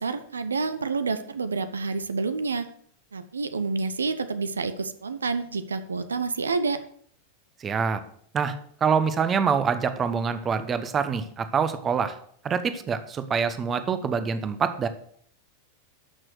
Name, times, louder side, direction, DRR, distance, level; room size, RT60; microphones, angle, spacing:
voice 1, 0.0-2.7 3.1-6.8, right 4 dB, 75° right, 11 dB, 0.8 m, -28 dB
voice 2, 7.6-8.0 8.3-12.2 12.4-14.9, right 6 dB, 25° right, 11 dB, 1.0 m, -25 dB
13.0 x 6.2 x 6.4 m, 0.62 s
figure-of-eight pair, 90°, 0 cm